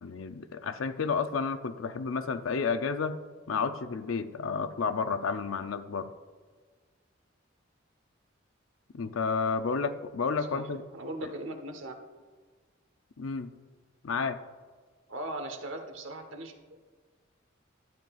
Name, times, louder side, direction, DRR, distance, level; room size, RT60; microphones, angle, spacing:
voice 1, 0.0-3.2 3.5-6.1 8.9-10.8 11.2-11.3 13.2-13.5 14.0-14.4, left 5 dB, 90° left, 10 dB, 0.5 m, -31 dB
voice 2, 10.9-11.9 15.1-16.8, right 1 dB, 75° right, 6 dB, 1.0 m, -39 dB
12.0 x 8.8 x 2.4 m, 1.5 s
head